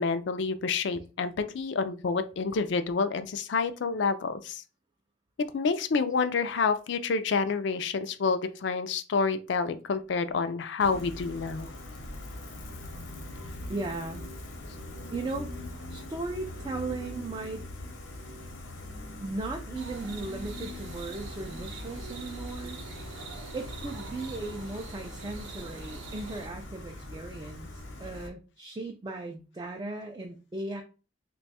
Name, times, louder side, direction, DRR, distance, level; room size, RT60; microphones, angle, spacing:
voice 1, 0.0-4.6 5.4-11.7, left 4 dB, 65° left, 10 dB, 0.4 m, -28 dB
Gull seagull, 10.8-28.3, left 1 dB, 80° left, 0.8 m, -42 dB
voice 2, 13.7-14.3 15.1-15.5 15.9-17.7 19.2-22.8 23.5-30.8, right 2 dB, 20° right, 2 dB, 0.3 m, -37 dB
sound 1, 19.7-26.5, right 3 dB, 75° right, 0.6 m, -44 dB
3.0 x 2.3 x 4.1 m, 0.33 s
head